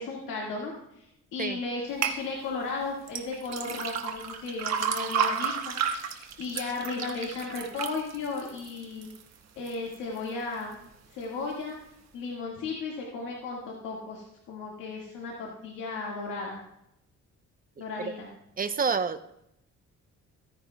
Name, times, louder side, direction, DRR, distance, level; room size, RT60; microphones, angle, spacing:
voice 1, 0.0-9.1 9.6-10.8 11.1-11.8 12.1-16.6 17.8-18.3, left 3 dB, 85° left, -3 dB, 1.9 m, -35 dB
sound 1, 2.0-2.2 3.1-9.2 9.7-10.2 10.7-10.8, right 7 dB, 60° right, 1.3 m, -31 dB
voice 2, 18.6-19.3, right 5 dB, 30° right, 10 dB, 0.7 m, -28 dB
15.5 x 9.9 x 2.3 m, 0.81 s
cardioid pair, 90°, 30 cm